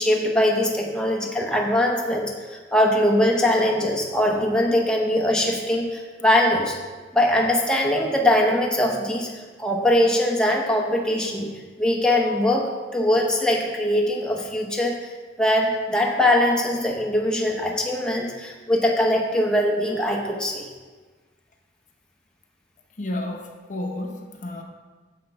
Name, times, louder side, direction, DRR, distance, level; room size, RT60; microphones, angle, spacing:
voice 1, 0.0-6.8 7.1-11.5 11.8-15.1 15.4-20.6, left 1 dB, 5° left, -1 dB, 0.8 m, -22 dB
voice 2, 23.0-24.6, left 1 dB, 45° left, 3 dB, 0.8 m, -31 dB
9.4 x 7.0 x 3.4 m, 1.4 s
head